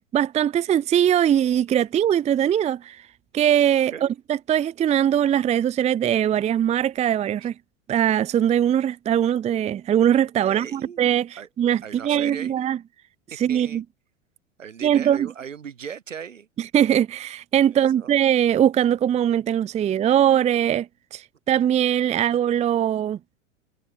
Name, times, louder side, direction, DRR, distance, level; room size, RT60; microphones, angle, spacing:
voice 1, 0.0-3.0 3.3-7.5 7.9-12.8 13.4-13.8 14.8-15.3 16.6-23.2, right 10 dB, 20° right, 0.7 m, -21 dB
voice 2, 10.4-11.5 11.8-12.6 13.3-13.8 14.6-16.5 17.7-18.1 22.1-22.2, right 7 dB, 80° right, 5.9 m, -38 dB
hypercardioid pair, 100°, 38 cm